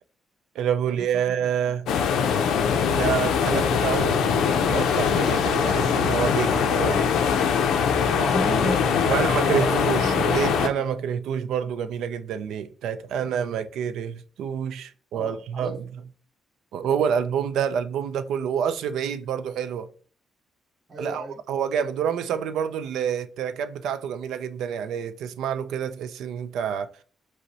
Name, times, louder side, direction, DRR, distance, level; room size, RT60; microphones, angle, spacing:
voice 1, 0.6-1.9 2.9-7.5 9.1-15.8 16.7-19.9 21.0-26.9, right 8 dB, 90° right, 0.4 m, -28 dB
voice 2, 1.4-1.7 8.1-9.8 10.0-10.8 15.1-15.8 20.9-21.4, right 2 dB, 25° right, 0.6 m, -33 dB
sound 1, 1.9-10.7, left 7 dB, 85° left, 0.4 m, -22 dB
5.3 x 2.1 x 4.0 m
cardioid pair, 165°, 0 cm